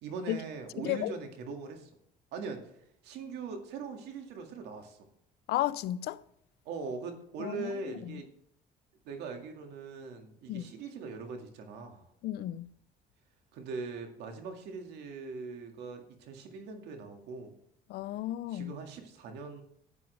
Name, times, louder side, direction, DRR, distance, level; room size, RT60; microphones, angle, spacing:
voice 1, 0.0-1.9 2.3-2.6 3.0-5.0 6.7-8.3 9.0-12.0 13.5-17.5 18.5-19.6, right 4 dB, 85° right, 2.0 m, -41 dB
voice 2, 5.5-6.2 7.4-7.7 8.0-8.2 10.5-10.7 12.2-12.7 17.9-18.7, left 14 dB, 75° left, 0.5 m, -33 dB
12.0 x 8.7 x 3.3 m
cardioid pair, 110°, 17 cm